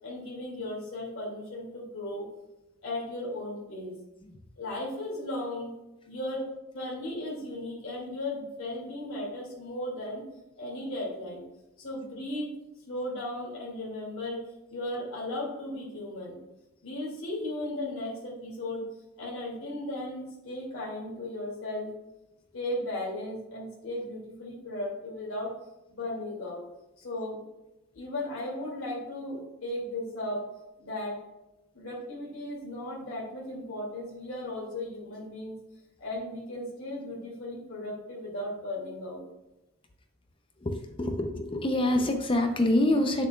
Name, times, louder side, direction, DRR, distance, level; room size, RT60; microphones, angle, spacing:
voice 1, 0.0-2.2 2.8-4.0 4.6-5.7 6.1-6.4 6.7-10.2 10.6-11.4 11.8-12.5 12.9-14.4 14.7-16.4 16.8-18.8 19.2-21.9 22.5-25.5 25.9-26.6 27.0-27.4 27.9-30.5 30.8-31.2 31.7-35.5 36.0-39.2, left 1 dB, 75° left, -4 dB, 2.4 m, -36 dB
voice 2, 40.6-43.3, left 1 dB, 25° left, 5 dB, 0.6 m, -26 dB
8.3 x 6.8 x 2.3 m, 0.95 s
head